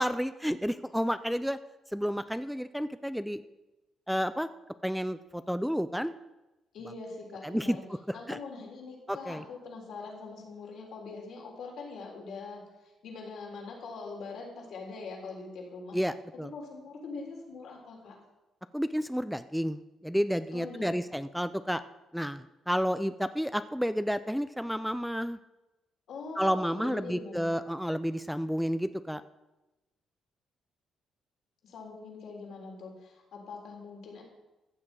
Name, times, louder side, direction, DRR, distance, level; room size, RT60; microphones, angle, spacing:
voice 1, 0.0-1.6 1.9-3.4 4.1-4.5 4.8-6.1 7.4-7.8 8.1-8.4 9.1-9.4 15.9-16.5 18.7-21.8 22.1-25.4 26.4-29.2, equal, ahead, 12 dB, 0.4 m, -31 dB
voice 2, 6.7-7.8 8.1-12.6 13.0-16.0 16.5-18.2 20.5-21.0 26.1-27.5 31.6-34.2, left 3 dB, 75° left, -1 dB, 3.6 m, -43 dB
14.5 x 7.4 x 4.8 m, 1.0 s
cardioid pair, 90°, 0 cm